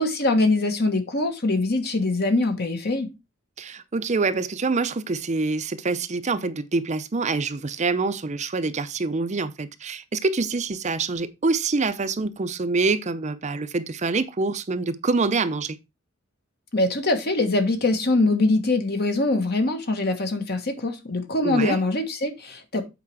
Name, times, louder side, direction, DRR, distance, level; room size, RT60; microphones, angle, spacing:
voice 1, 0.0-3.1 16.7-22.8, left 2 dB, 50° left, 1.4 m, -23 dB
voice 2, 3.6-15.8 21.4-21.8, right 3 dB, 35° right, 0.6 m, -26 dB
8.2 x 4.8 x 4.8 m
head